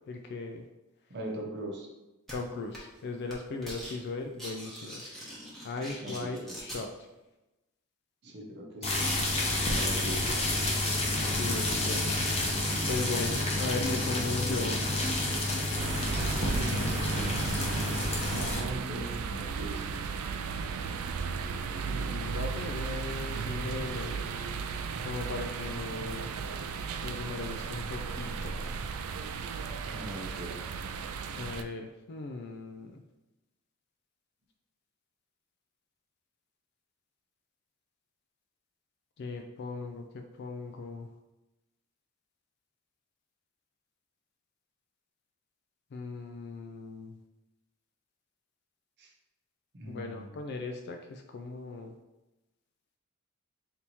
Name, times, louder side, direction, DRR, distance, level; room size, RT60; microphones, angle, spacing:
voice 1, 0.1-0.7 2.3-5.0 5.6-7.1 11.3-12.2 12.9-14.9 16.5-17.3 21.8-24.3 24.6-26.7 27.0-28.8 31.3-33.0 39.2-41.1 45.9-47.2 49.9-51.9, left 3 dB, 50° left, 4 dB, 0.3 m, -38 dB
voice 2, 1.1-1.9 6.0-6.6 8.2-9.1 9.6-10.4 17.0-17.5 18.3-20.0 29.9-30.6 49.0-49.1 49.7-50.4, right 1 dB, 55° right, 0 dB, 0.8 m, -41 dB
sound 1, 2.3-2.4 2.7-3.0 3.3-3.9 4.2-6.8, equal, ahead, 1.0 m, -43 dB
sound 2, 8.8-18.6, left 1 dB, 30° left, 0.8 m, -29 dB
sound 3, 15.8-31.6, right 5 dB, 80° right, 0.3 m, -35 dB
3.5 x 2.8 x 4.3 m, 1.0 s
head